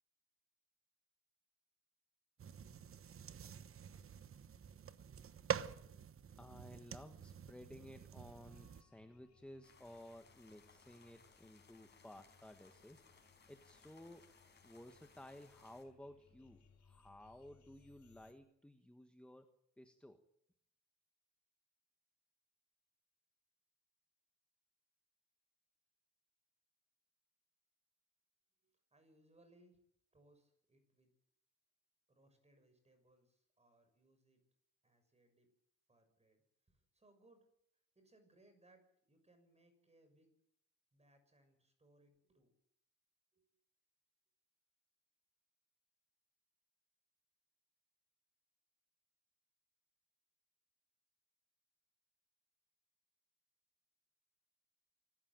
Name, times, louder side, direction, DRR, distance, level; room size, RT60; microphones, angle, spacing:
sound 1, 2.4-8.8, right 8 dB, 45° right, 1.1 m, -47 dB
voice 1, 6.4-13.0 13.5-14.2 14.6-19.5 19.8-20.2, left 1 dB, 5° left, 7 dB, 1.4 m, -56 dB
sound 2, 8.4-18.3, left 6 dB, 65° left, 5.0 m, -70 dB
sound 3, 9.6-15.8, left 4 dB, 35° left, 5.0 m, -66 dB
voice 2, 28.9-29.8 30.1-31.1 32.1-34.4 34.8-35.5 35.9-36.4 36.7-37.4 37.9-40.3 40.9-42.5 43.3-43.4, right 1 dB, 20° right, 7 dB, 6.5 m, -70 dB
26.0 x 15.0 x 9.0 m, 0.74 s
cardioid pair, 130°, 30 cm